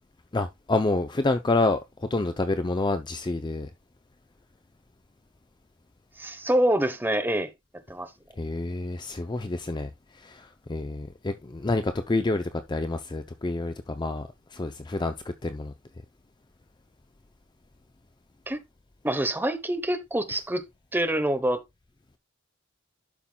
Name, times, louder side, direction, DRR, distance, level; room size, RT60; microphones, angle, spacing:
voice 1, 0.3-1.8 2.1-3.7 8.4-9.9 10.2-15.1 15.4-15.7, left 2 dB, 20° left, 0.5 m, -28 dB
voice 2, 6.2-7.5 7.9-8.1 18.5-18.6 19.0-20.6 20.9-21.6, right 1 dB, 10° right, 1.0 m, -26 dB
11.5 x 5.7 x 2.3 m
head